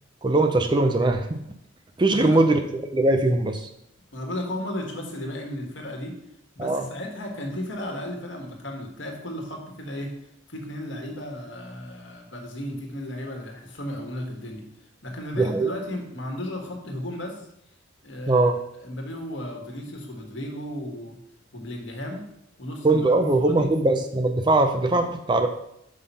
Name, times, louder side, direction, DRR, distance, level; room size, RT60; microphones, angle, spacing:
voice 1, 0.2-1.4 2.0-2.6 2.9-3.7 6.6-6.9 15.4-15.7 18.3-18.6 22.8-25.5, right 2 dB, 25° right, 7 dB, 0.5 m, -21 dB
voice 2, 2.1-2.5 4.1-6.1 6.5-10.1 10.5-14.6 15.0-17.5 18.0-21.2 21.5-22.2 22.6-23.7, left 1 dB, 70° left, 2 dB, 1.6 m, -34 dB
5.7 x 5.3 x 5.5 m, 0.78 s
head